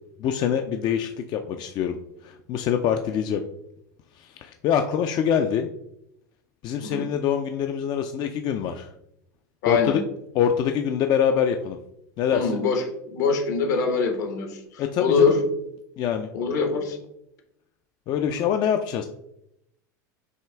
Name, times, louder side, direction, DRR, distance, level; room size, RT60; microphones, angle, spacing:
voice 1, 0.2-2.0 2.2-3.4 4.2-5.7 6.6-8.9 9.7-10.0 10.3-11.8 12.2-12.6 14.8-15.4 16.0-16.3 16.6-16.7 18.1-19.0, left 8 dB, 45° left, 6 dB, 0.4 m, -24 dB
voice 2, 9.6-10.0 12.3-15.4 16.3-17.0, left 5 dB, 75° left, 4 dB, 1.1 m, -23 dB
6.3 x 2.4 x 3.4 m, 0.80 s
hypercardioid pair, 95°, 10 cm